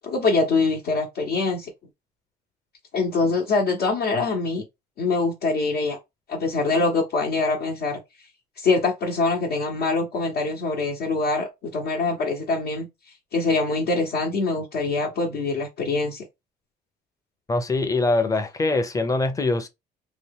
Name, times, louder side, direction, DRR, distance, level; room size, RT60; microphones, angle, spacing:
voice 1, 0.0-1.7 2.9-4.6 5.0-6.0 6.3-8.0 8.6-12.9 13.3-16.2, left 3 dB, 75° left, 0.9 m, -24 dB
voice 2, 17.5-19.7, left 2 dB, 20° left, 0.5 m, -23 dB
2.8 x 2.2 x 3.3 m
cardioid pair, 110°, 17 cm